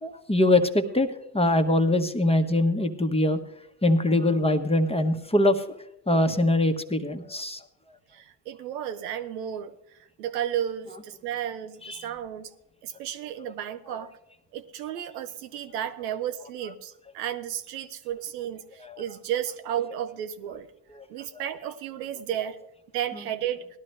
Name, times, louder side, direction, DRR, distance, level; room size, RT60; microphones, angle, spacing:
voice 1, 0.0-1.1 1.3-3.4 3.8-5.6 6.1-7.6 11.9-12.0 18.9-19.0, left 1 dB, 10° left, 7 dB, 1.1 m, -23 dB
voice 2, 8.1-9.7 10.2-12.5 12.8-14.1 14.5-20.7 21.1-22.6 22.9-23.7, right 10 dB, 85° right, 9 dB, 0.7 m, -33 dB
18.0 x 12.0 x 3.3 m, 0.82 s
hypercardioid pair, 50°, 47 cm